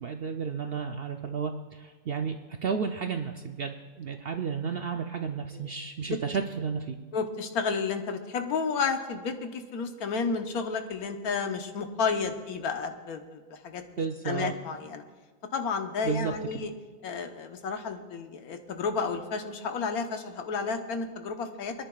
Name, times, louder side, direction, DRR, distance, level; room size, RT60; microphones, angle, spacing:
voice 1, 0.0-2.4 2.6-7.0 14.0-14.5 16.0-16.6, right 6 dB, 65° right, 5 dB, 0.6 m, -32 dB
voice 2, 7.1-13.8 14.2-15.0 15.5-16.7 17.0-21.7, left 5 dB, 90° left, 6 dB, 1.4 m, -31 dB
28.5 x 10.5 x 2.3 m, 1.4 s
omnidirectional pair, 1.5 m